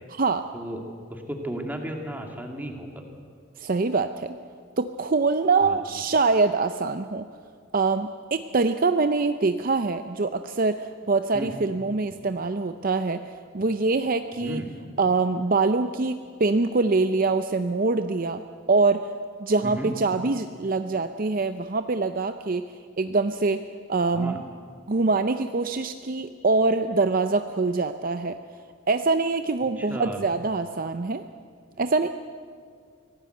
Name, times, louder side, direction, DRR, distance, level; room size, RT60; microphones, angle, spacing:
voice 1, 0.1-0.4 3.6-4.4 4.8-7.3 7.7-13.2 13.5-14.6 15.0-18.4 18.7-19.0 19.4-22.7 23.0-23.6 23.9-24.4 24.9-28.4 28.9-31.2 31.8-32.1, right 3 dB, 40° right, 9 dB, 0.6 m, -24 dB
voice 2, 1.1-3.0 5.6-5.8 11.3-11.5 14.4-14.7 19.6-19.9 24.1-24.4 29.8-30.2, right 1 dB, 10° right, 2 dB, 2.3 m, -34 dB
24.5 x 17.0 x 7.9 m, 2.1 s
head